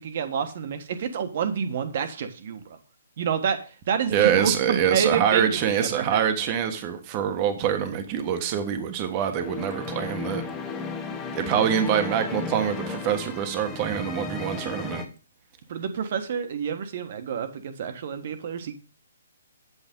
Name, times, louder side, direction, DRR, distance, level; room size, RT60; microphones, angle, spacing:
voice 1, 0.0-2.8 3.2-3.6 3.9-6.3 15.7-18.7, right 7 dB, 50° right, 8 dB, 1.4 m, -28 dB
voice 2, 4.1-10.4 11.3-15.0, right 9 dB, 30° right, 7 dB, 1.3 m, -25 dB
sound 1, 9.2-15.0, left 4 dB, 15° left, 0.9 m, -34 dB
8.3 x 7.8 x 3.8 m, 0.35 s
hypercardioid pair, 155°, 0 cm